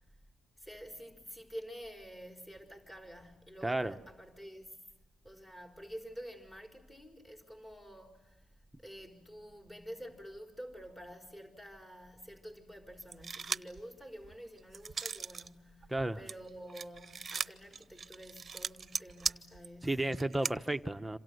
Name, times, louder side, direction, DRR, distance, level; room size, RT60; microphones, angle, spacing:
voice 1, 0.6-4.8 5.2-8.4 8.8-20.1, equal, 15° left, 4.9 m, -49 dB
voice 2, 3.6-3.9 15.9-16.2 19.8-21.2, right 1 dB, 10° right, 1.0 m, -32 dB
sound 1, 13.1-13.8 14.2-15.5 15.8-20.5, right 5 dB, 40° right, 0.9 m, -38 dB
27.0 x 26.5 x 7.9 m
cardioid pair, 90°, 0 cm